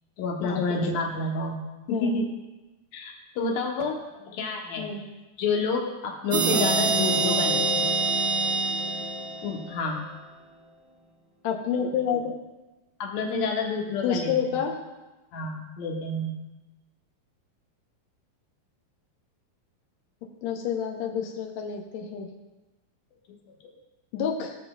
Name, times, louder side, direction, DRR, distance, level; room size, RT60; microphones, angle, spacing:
voice 1, 0.2-1.6 1.9-2.3 2.9-4.0 4.3-5.0 5.4-7.8 9.4-10.0 13.0-14.3 15.3-16.3 23.3-23.4, left 3 dB, 65° left, 1 dB, 1.8 m, -29 dB
sound 1, 6.3-9.9, right 3 dB, 85° right, 3.0 m, -25 dB
voice 2, 11.4-12.3 14.0-14.8 20.4-22.3 24.1-24.6, left 7 dB, 85° left, -1 dB, 1.5 m, -28 dB
16.0 x 7.4 x 2.3 m, 1.1 s
omnidirectional pair, 4.3 m